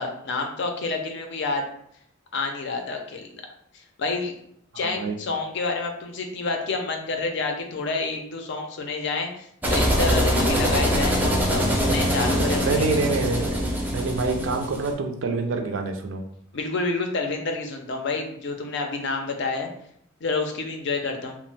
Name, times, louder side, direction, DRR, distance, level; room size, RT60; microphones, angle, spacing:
voice 1, 0.0-1.6 2.3-3.3 4.0-4.3 4.8-12.8 16.5-19.7 20.2-21.4, left 3 dB, 60° left, 4 dB, 0.5 m, -28 dB
voice 2, 4.7-5.1 12.6-16.2, right 3 dB, 65° right, 4 dB, 0.4 m, -27 dB
sound 1, 9.6-14.9, equal, 10° right, 0.4 m, -23 dB
2.9 x 2.0 x 3.2 m, 0.69 s
head